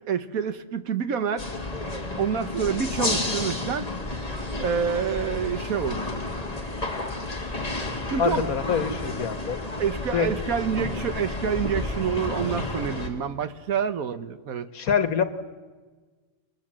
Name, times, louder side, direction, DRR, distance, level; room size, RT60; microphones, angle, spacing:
voice 1, 0.1-1.5 2.2-3.9 4.6-6.0 8.1-8.5 9.8-14.7, right 7 dB, 80° right, 11 dB, 1.6 m, -27 dB
sound 1, 1.4-13.1, left 2 dB, 25° left, 2.5 m, -31 dB
voice 2, 8.2-9.6 10.1-10.3 14.7-15.2, left 7 dB, 85° left, 10 dB, 1.9 m, -25 dB
29.5 x 21.5 x 7.6 m, 1.4 s
omnidirectional pair, 1.5 m